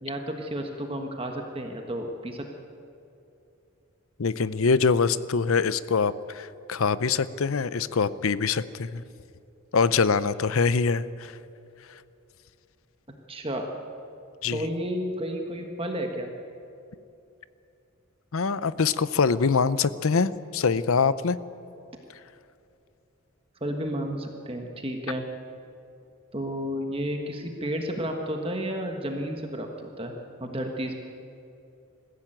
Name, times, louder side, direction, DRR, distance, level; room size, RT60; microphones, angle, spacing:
voice 1, 0.0-2.4 13.3-13.7 14.5-16.3 23.6-25.2 26.3-30.1 30.4-30.9, equal, 25° right, 3 dB, 1.4 m, -32 dB
voice 2, 4.2-9.0 9.7-11.4 14.4-14.7 18.3-21.4, left 5 dB, 70° left, 16 dB, 0.6 m, -24 dB
20.5 x 15.0 x 9.0 m, 2.7 s
head